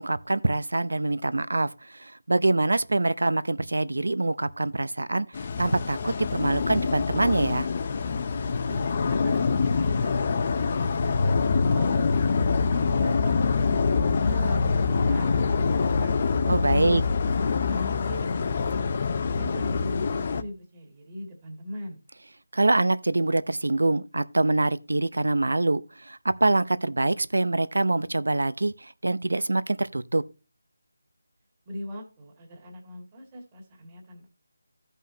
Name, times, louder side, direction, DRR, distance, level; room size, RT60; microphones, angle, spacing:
voice 1, 0.0-7.7 16.5-17.0 22.5-30.2, right 2 dB, 90° right, 0.7 m, -25 dB
sound 1, 5.3-20.4, left 4 dB, 30° left, 0.6 m, -25 dB
voice 2, 8.7-13.4 13.7-16.2 16.7-17.1 17.3-22.0 31.7-34.3, equal, 15° right, 2.1 m, -39 dB
15.0 x 5.5 x 2.8 m
figure-of-eight pair, 175°, 0 cm